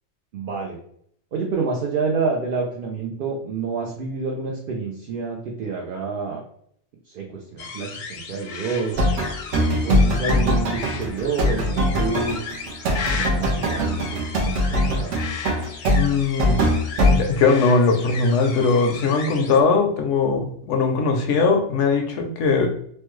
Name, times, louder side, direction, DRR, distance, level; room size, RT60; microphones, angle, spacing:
voice 1, 0.3-0.8 1.3-6.4 7.1-9.1 9.8-12.4 13.1-15.1, right 4 dB, 60° right, 0 dB, 0.6 m, -28 dB
sound 1, 7.6-19.6, left 5 dB, 60° left, 0.5 m, -35 dB
sound 2, 8.9-17.2, equal, 75° right, 1.0 m, -21 dB
voice 2, 15.9-16.6 17.1-22.7, left 4 dB, 75° left, 4 dB, 0.9 m, -20 dB
3.1 x 2.2 x 3.0 m, 0.67 s
omnidirectional pair, 1.3 m